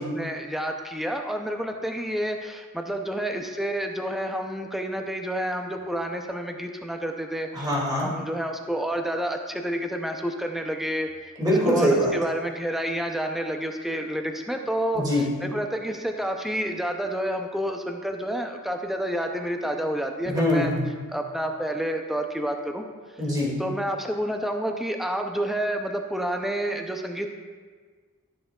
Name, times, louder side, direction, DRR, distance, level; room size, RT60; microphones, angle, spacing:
voice 1, 0.0-7.7 8.0-11.1 11.6-20.7 21.1-22.8 23.6-27.3, right 1 dB, ahead, 3 dB, 0.4 m, -29 dB
voice 2, 7.5-8.1 11.4-12.1 14.9-15.3 20.3-20.8 23.2-23.5, equal, 20° right, -5 dB, 2.1 m, -23 dB
14.5 x 6.5 x 2.3 m, 1.5 s
head